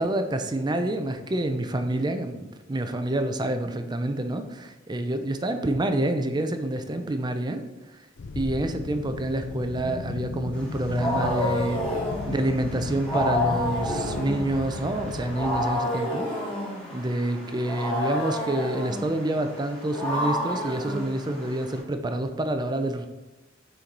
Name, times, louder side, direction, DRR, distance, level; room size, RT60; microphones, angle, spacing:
voice 1, 0.0-7.6 8.4-11.8 12.3-16.3 16.9-23.1, right 1 dB, 20° right, 7 dB, 0.5 m, -27 dB
sound 1, 8.2-15.7, left 3 dB, 70° left, 0.5 m, -35 dB
Wild animals, 10.6-21.8, left 1 dB, 5° left, 2.3 m, -30 dB
6.8 x 4.5 x 3.9 m, 1.1 s
head